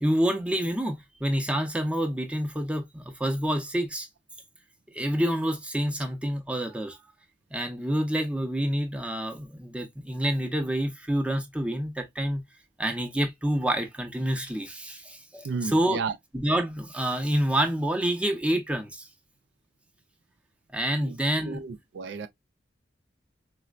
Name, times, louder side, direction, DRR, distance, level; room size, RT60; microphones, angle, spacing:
voice 1, 0.0-4.1 4.9-7.0 7.5-12.4 12.8-16.0 16.3-19.1 20.7-21.6, right 1 dB, 5° right, 0.6 m, -28 dB
voice 2, 15.4-16.1 21.0-21.2 21.5-22.3, right 5 dB, 80° right, 0.4 m, -32 dB
4.2 x 2.1 x 2.3 m
head